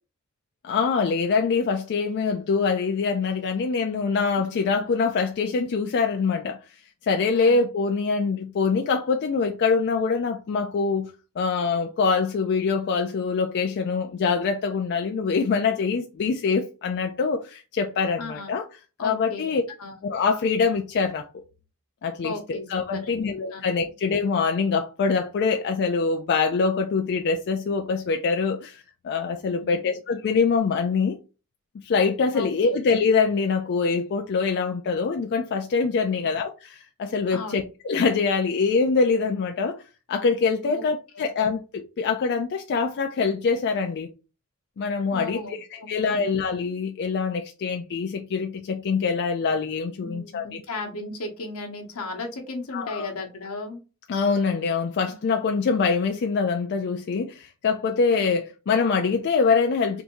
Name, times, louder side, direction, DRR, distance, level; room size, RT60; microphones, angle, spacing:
voice 1, 0.6-6.6 7.0-18.7 19.0-19.6 20.0-21.4 22.0-31.2 31.8-39.8 40.1-44.1 44.8-50.6 52.7-53.1 54.1-60.0, left 5 dB, 50° left, 0.4 m, -24 dB
voice 2, 4.4-4.7 7.3-7.6 18.2-18.5 19.0-19.5 19.8-20.0 22.2-22.7 23.0-23.6 29.6-29.8 32.3-32.7 36.1-36.3 37.3-37.6 40.7-40.8 45.1-46.2 50.0-53.8 55.1-55.2 58.1-58.2, left 3 dB, 80° left, 0.9 m, -36 dB
3.4 x 2.6 x 2.9 m
head